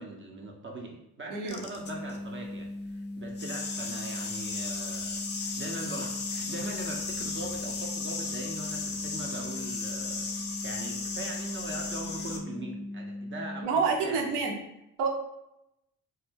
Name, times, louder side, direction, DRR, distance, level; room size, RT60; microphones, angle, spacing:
voice 1, 0.0-10.3 10.6-14.4, right 2 dB, 30° right, 0 dB, 0.5 m, -41 dB
voice 2, 1.3-1.6 13.6-14.5 15.0-15.1, right 5 dB, 70° right, 1 dB, 0.7 m, -27 dB
sound 1, 1.5-2.2 3.3-12.4, left 4 dB, 25° left, 0.4 m, -36 dB
sound 2, 1.8-13.6, left 1 dB, 90° left, 0.6 m, -39 dB
2.2 x 2.1 x 3.2 m, 0.85 s
hypercardioid pair, 50°, 43 cm